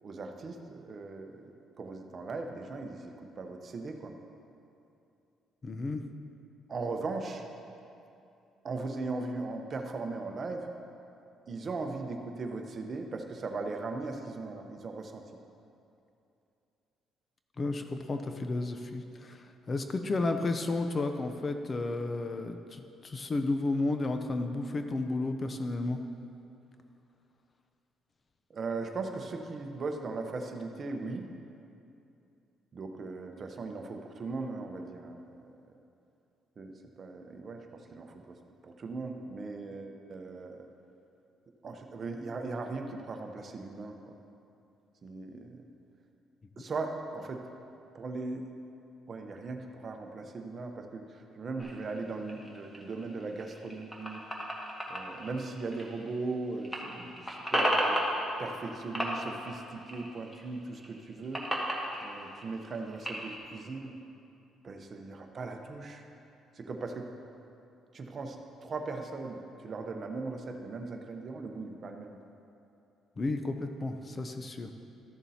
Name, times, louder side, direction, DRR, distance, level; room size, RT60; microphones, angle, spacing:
voice 1, 0.0-4.2 6.7-7.5 8.6-10.7 11.5-15.3 28.5-31.3 32.7-35.8 36.6-38.4 38.6-40.7 41.6-44.2 45.0-45.6 46.6-47.5 47.9-48.5 49.1-54.2 54.9-61.5 62.0-63.9 64.6-66.0 66.5-67.1 67.9-72.2, right 3 dB, 40° right, 4 dB, 0.8 m, -38 dB
voice 2, 5.6-6.0 17.6-26.0 73.2-74.7, left 2 dB, 30° left, 7 dB, 0.5 m, -32 dB
sound 1, 51.6-56.3 56.6-58.7 58.9-60.4 60.7-63.4, equal, 10° left, 1.4 m, -34 dB
13.5 x 7.1 x 2.8 m, 2.7 s
cardioid pair, 105°, 0 cm